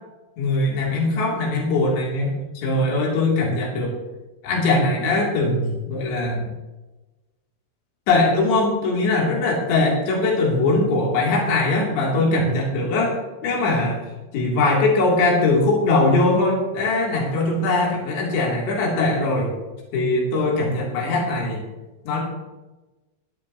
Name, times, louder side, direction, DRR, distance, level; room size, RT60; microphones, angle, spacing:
voice 1, 0.4-3.9 4.4-6.5 8.1-13.2 13.4-14.0 14.3-19.5 19.9-21.6 22.1-22.2, left 2 dB, 65° left, -3 dB, 5.4 m, -21 dB
17.0 x 12.5 x 3.1 m, 1.1 s
omnidirectional pair, 5.5 m